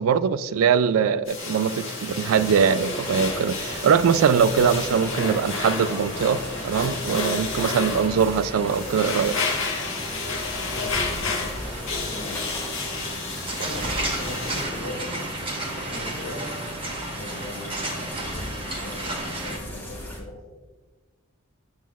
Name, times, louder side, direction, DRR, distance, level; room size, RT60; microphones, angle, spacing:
voice 1, 0.0-9.4, right 6 dB, 75° right, 0.3 m, -22 dB
sound 1, 1.3-14.6, left 4 dB, 60° left, 1.1 m, -31 dB
sound 2, 1.4-19.6, right 1 dB, 25° right, 0.9 m, -35 dB
sound 3, 2.3-20.2, equal, 10° left, 0.9 m, -38 dB
voice 2, 11.2-12.4 13.6-15.2 15.7-16.5 17.2-17.8 18.1-20.4, left 1 dB, 85° left, 1.5 m, -39 dB
7.5 x 7.0 x 2.4 m
head